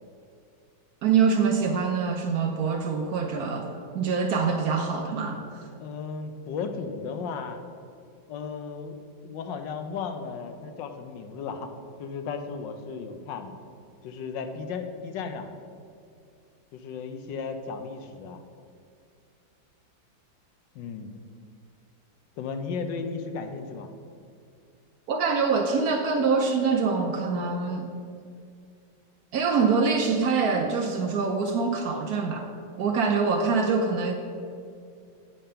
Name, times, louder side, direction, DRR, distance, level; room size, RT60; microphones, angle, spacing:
voice 1, 1.0-3.7 3.9-5.4 25.1-27.9 29.3-32.5 32.8-34.1, right 5 dB, 65° right, 4 dB, 1.0 m, -24 dB
voice 2, 5.8-7.6 8.3-8.9 9.2-11.7 12.0-13.6 14.0-15.5 16.7-18.4 20.7-21.1 22.4-23.9, left 5 dB, 75° left, 7 dB, 1.3 m, -35 dB
8.6 x 5.3 x 5.6 m, 2.4 s
omnidirectional pair, 2.0 m